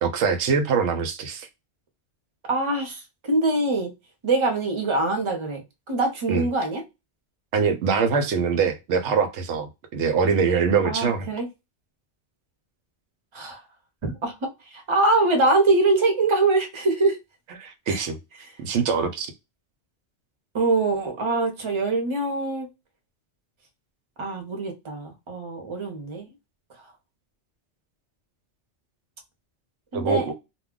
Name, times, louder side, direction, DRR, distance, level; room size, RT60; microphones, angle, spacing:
voice 1, 0.0-1.5 6.3-6.4 7.5-11.3 17.6-18.2 18.6-19.3 29.9-30.3, right 5 dB, 90° right, 0.9 m, -23 dB
voice 2, 2.5-3.9 4.2-5.6 5.9-6.8 10.8-11.5 13.3-13.6 14.0-14.3 14.6-17.2 17.9-18.1 18.4-18.6 20.5-22.7 24.2-26.3 26.8-26.9 29.9-30.3, right 2 dB, 30° right, 0.7 m, -24 dB
2.3 x 2.2 x 3.6 m
omnidirectional pair, 1.2 m